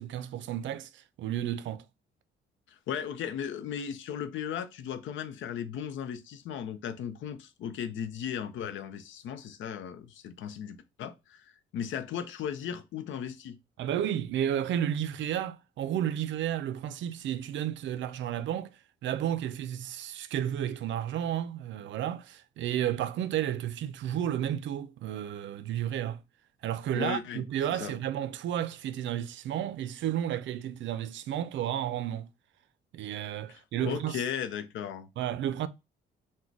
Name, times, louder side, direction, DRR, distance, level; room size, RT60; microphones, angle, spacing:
voice 1, 0.0-1.8 13.8-26.2 26.6-32.3 32.9-34.2 35.2-35.7, right 10 dB, 70° right, 0.4 m, -32 dB
voice 2, 2.7-13.6 26.9-27.4 27.7-28.0 33.8-35.1, left 8 dB, 75° left, 0.6 m, -36 dB
3.9 x 2.2 x 4.5 m
cardioid pair, 90°, 20 cm